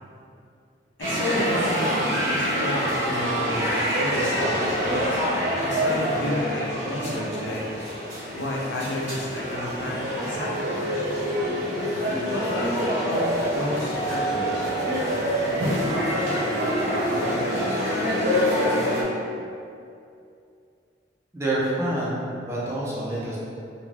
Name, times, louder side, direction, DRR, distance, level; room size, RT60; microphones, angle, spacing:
voice 1, 1.0-4.8 5.6-7.6 8.3-11.1 12.2-14.7, left 1 dB, 80° left, -4 dB, 0.5 m, -31 dB
sound 1, 1.0-19.0, equal, 70° right, 1.2 m, -25 dB
voice 2, 21.3-23.4, right 1 dB, 15° right, -7 dB, 0.4 m, -27 dB
2.5 x 2.2 x 3.2 m, 2.4 s
head